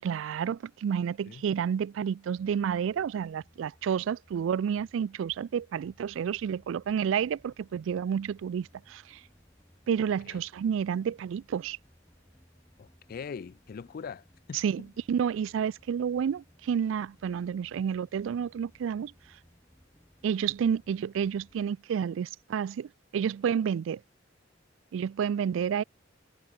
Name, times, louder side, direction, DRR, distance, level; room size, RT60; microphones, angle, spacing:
voice 1, 0.0-9.2 9.9-11.8 14.5-19.1 20.2-24.0 24.9-25.8, right 7 dB, 75° right, 0.3 m, -30 dB
sound 1, 2.3-21.7, equal, 15° left, 1.7 m, -62 dB
voice 2, 12.8-14.6, left 6 dB, 50° left, 0.3 m, -41 dB
head